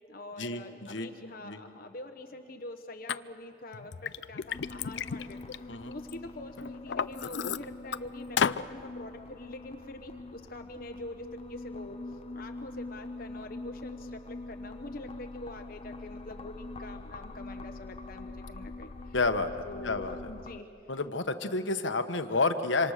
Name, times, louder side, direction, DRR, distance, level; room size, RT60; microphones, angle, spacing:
voice 1, 0.0-12.0 12.3-19.2 19.6-20.7, left 1 dB, 50° left, 5 dB, 1.2 m, -45 dB
Liquid, 3.1-3.2 3.7-6.1 6.6-8.0 8.4-8.6, left 7 dB, 70° left, 0.5 m, -32 dB
sound 1, 4.5-20.6, left 2 dB, 35° left, 0.6 m, -44 dB
voice 2, 19.1-20.2 20.9-22.9, left 3 dB, 90° left, 8 dB, 1.3 m, -30 dB
26.5 x 26.0 x 6.6 m, 2.9 s
head